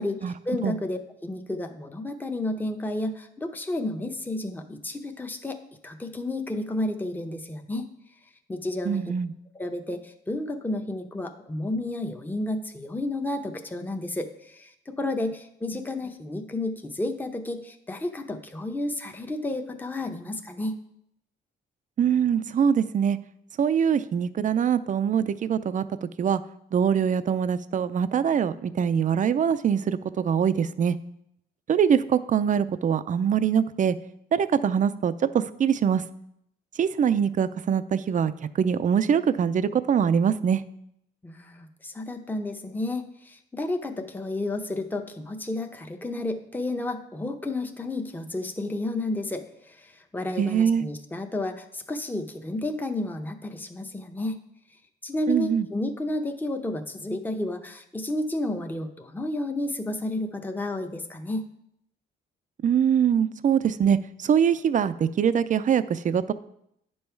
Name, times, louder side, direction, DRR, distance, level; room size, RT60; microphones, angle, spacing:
voice 1, 0.0-7.9 8.5-9.0 9.5-20.8 41.2-54.4 55.0-61.5, left 2 dB, 10° left, 5 dB, 0.8 m, -31 dB
voice 2, 8.8-9.3 22.0-23.2 23.6-25.8 26.2-26.4 26.7-31.0 31.7-34.0 34.3-36.0 36.8-38.3 38.6-40.6 50.4-50.9 55.3-55.7 62.6-66.3, right 8 dB, 40° right, 13 dB, 0.5 m, -23 dB
9.5 x 5.5 x 4.5 m, 0.75 s
cardioid pair, 90°, 20 cm